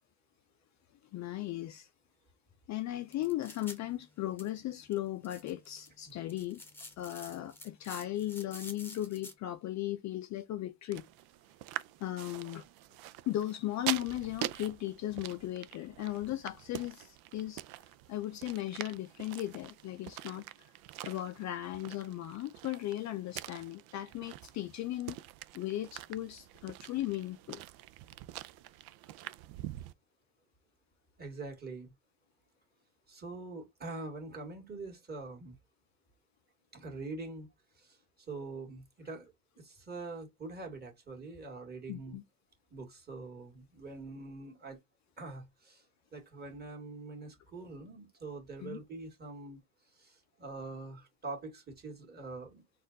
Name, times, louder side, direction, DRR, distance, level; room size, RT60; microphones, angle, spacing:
voice 1, 1.1-1.9 2.7-6.6 7.0-11.0 12.0-12.7 13.3-17.6 18.1-20.4 21.0-25.2 25.5-27.6 41.9-42.2 48.6-48.8, left 14 dB, 40° left, 0.5 m, -37 dB
sound 1, 2.9-9.3, left 2 dB, 5° left, 0.9 m, -52 dB
sound 2, 10.9-29.9, right 15 dB, 60° right, 0.5 m, -45 dB
voice 2, 31.2-31.9 33.1-35.6 36.7-37.5 37.8-38.0 38.3-42.2 42.7-44.8 45.2-45.9 46.1-49.6 49.9-52.6, right 3 dB, 20° right, 2.0 m, -44 dB
4.2 x 2.5 x 3.9 m
cardioid pair, 120°, 43 cm